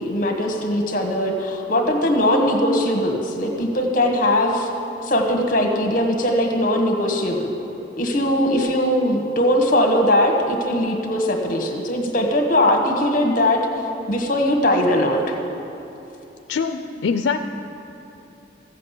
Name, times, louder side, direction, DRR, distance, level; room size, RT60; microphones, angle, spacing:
voice 1, 0.0-4.7 5.0-7.5 8.0-13.6 14.1-15.3, left 1 dB, 45° left, 3 dB, 1.4 m, -20 dB
voice 2, 16.5-17.4, left 5 dB, 90° left, 7 dB, 0.5 m, -23 dB
14.0 x 7.6 x 8.2 m, 3.0 s
head